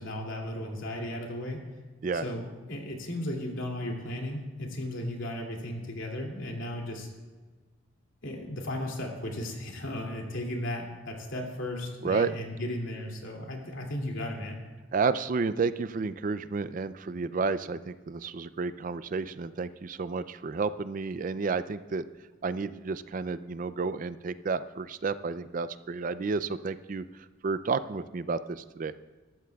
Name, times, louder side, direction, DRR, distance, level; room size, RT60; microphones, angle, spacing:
voice 1, 0.0-1.6 2.1-7.1 8.2-14.6, left 1 dB, 85° left, 0 dB, 2.5 m, -35 dB
voice 2, 14.9-22.1 22.4-27.0 27.4-28.9, right 4 dB, 40° right, 14 dB, 0.4 m, -31 dB
20.5 x 13.5 x 2.3 m, 1.3 s
head